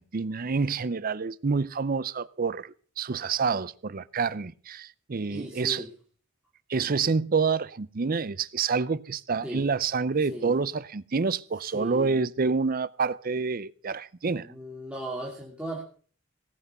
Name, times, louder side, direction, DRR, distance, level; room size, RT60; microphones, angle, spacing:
voice 1, 0.0-5.8 6.7-14.5, right 5 dB, 45° right, 0.6 m, -28 dB
voice 2, 5.3-5.9 9.4-9.7 10.3-10.6 11.7-12.2 14.3-15.8, right 1 dB, 5° right, 2.7 m, -37 dB
17.5 x 8.4 x 6.8 m
head